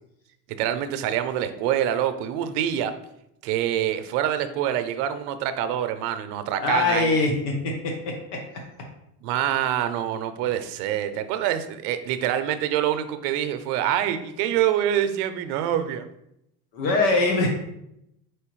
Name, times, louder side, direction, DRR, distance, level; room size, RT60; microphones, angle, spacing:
voice 1, 0.5-2.9 3.4-7.1 9.2-16.1, right 10 dB, 75° right, 10 dB, 0.6 m, -25 dB
voice 2, 6.6-7.5 7.8-7.9 16.7-17.5, left 3 dB, 85° left, 1 dB, 1.0 m, -21 dB
4.9 x 3.1 x 3.0 m, 0.81 s
supercardioid pair, 95°, 48 cm